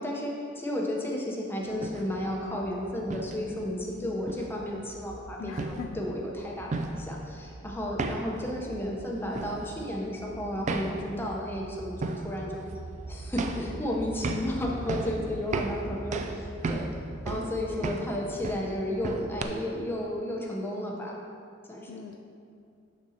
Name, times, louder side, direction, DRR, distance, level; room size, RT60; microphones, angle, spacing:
voice 1, 0.0-12.6 13.1-16.9 17.2-21.2 21.7-22.0, left 1 dB, 10° left, -2 dB, 0.7 m, -33 dB
sound 1, 1.7-19.4, right 3 dB, 35° right, 0.3 m, -37 dB
voice 2, 5.4-6.0 21.9-22.2, left 7 dB, 80° left, 3 dB, 0.3 m, -40 dB
6.4 x 6.2 x 2.8 m, 2.4 s
head